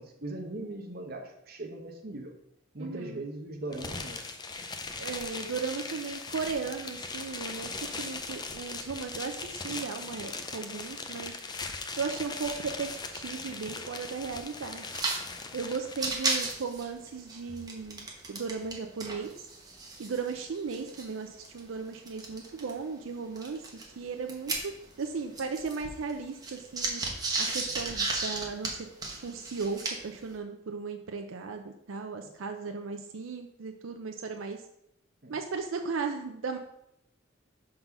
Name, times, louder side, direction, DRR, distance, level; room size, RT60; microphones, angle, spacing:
voice 1, 0.0-2.3 2.7-4.2 35.2-35.4, right 2 dB, 50° right, 2 dB, 1.0 m, -39 dB
voice 2, 2.8-3.2 5.0-11.3 12.0-14.9 15.5-19.5 20.0-23.6 24.0-24.7 25.0-27.0 27.4-28.9 29.2-34.6 35.3-36.6, right 5 dB, 85° right, 5 dB, 0.5 m, -36 dB
sound 1, 3.7-16.5, left 4 dB, 20° left, 0.5 m, -39 dB
sound 2, 14.9-15.2 15.5-15.6 15.9-18.8 19.0-22.7 23.4-25.1 25.3-30.2, right 3 dB, 20° right, 1.1 m, -34 dB
5.5 x 3.8 x 5.9 m, 0.80 s
head